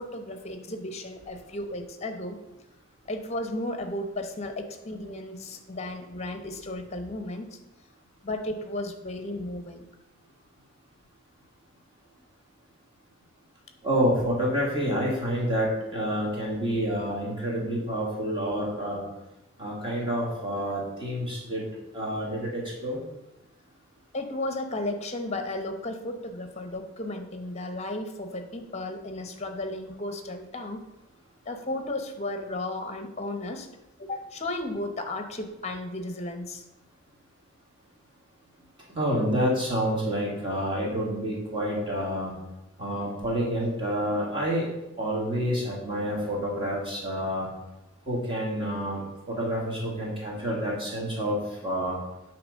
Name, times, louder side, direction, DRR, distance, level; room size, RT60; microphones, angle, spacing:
voice 1, 0.0-2.4 3.1-7.5 8.2-9.8 24.1-30.8 31.5-33.7 34.0-36.6, left 1 dB, 30° left, 6 dB, 0.8 m, -34 dB
voice 2, 13.8-19.0 19.6-21.7 21.9-23.0 38.9-42.3 42.8-44.7 45.0-47.5 48.1-49.0 49.3-51.9, equal, 25° right, -4 dB, 1.7 m, -28 dB
8.6 x 3.0 x 6.3 m, 0.93 s
head